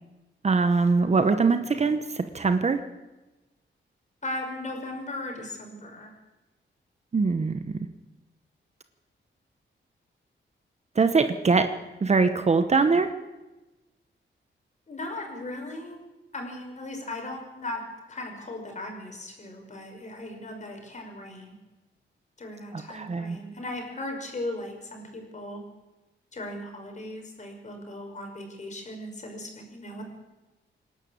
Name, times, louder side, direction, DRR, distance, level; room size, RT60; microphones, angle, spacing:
voice 1, 0.4-2.8 7.1-7.6 11.0-11.7 12.0-13.1 22.7-23.4, right 4 dB, 35° right, 9 dB, 1.0 m, -22 dB
voice 2, 4.2-6.1 14.9-16.0 16.3-17.8 18.1-21.5 22.4-25.6 26.3-30.0, left 1 dB, 35° left, 3 dB, 5.4 m, -37 dB
26.5 x 11.5 x 8.8 m, 1.1 s
wide cardioid pair, 150°, 20 cm